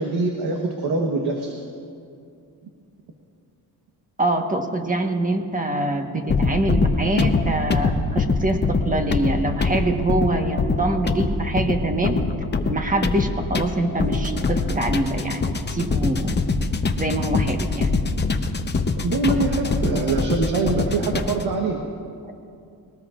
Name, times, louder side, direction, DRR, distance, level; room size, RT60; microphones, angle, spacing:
voice 1, 0.0-1.5 19.0-21.8, right 3 dB, 80° right, 2 dB, 1.3 m, -23 dB
voice 2, 4.2-12.2 12.7-15.4 15.7-16.3 17.0-17.9, right 2 dB, 20° right, 4 dB, 1.3 m, -24 dB
sound 1, 6.3-21.5, left 3 dB, 25° left, 0.8 m, -24 dB
21.0 x 18.5 x 2.5 m, 2.4 s
cardioid pair, 90°, 39 cm